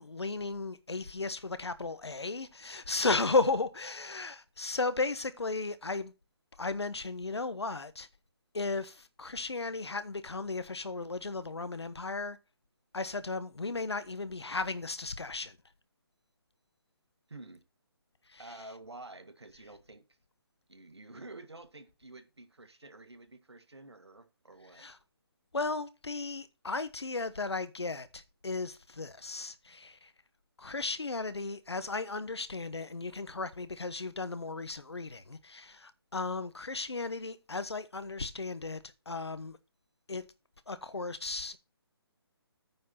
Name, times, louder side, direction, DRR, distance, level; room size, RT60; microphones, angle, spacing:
voice 1, 0.0-6.1 6.6-8.1 8.5-12.4 12.9-15.6 18.3-18.4 24.8-25.0 25.5-30.1 30.6-39.6 40.1-40.2 40.7-41.6, left 3 dB, 85° left, 1.2 m, -35 dB
voice 2, 17.3-17.6 18.4-20.2 20.7-24.9, right 2 dB, 90° right, 1.7 m, -50 dB
9.2 x 4.4 x 5.8 m
figure-of-eight pair, 150°, 14 cm